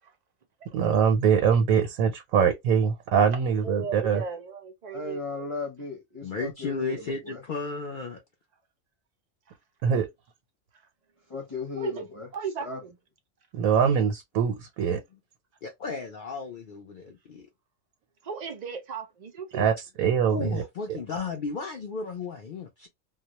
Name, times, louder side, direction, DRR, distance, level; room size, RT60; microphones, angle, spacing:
voice 1, 0.7-4.2 9.8-10.1 13.5-15.0 19.5-20.6, right 7 dB, 90° right, 1.0 m, -23 dB
voice 2, 3.6-5.2 11.8-12.1 12.3-12.9 18.2-19.7, right 6 dB, 70° right, 0.4 m, -36 dB
voice 3, 4.9-7.4 11.3-12.3 12.6-12.8, left 4 dB, 30° left, 0.7 m, -36 dB
voice 4, 6.2-8.2 15.6-17.5 20.3-22.9, left 4 dB, 80° left, 0.4 m, -34 dB
2.3 x 2.1 x 2.8 m
omnidirectional pair, 1.4 m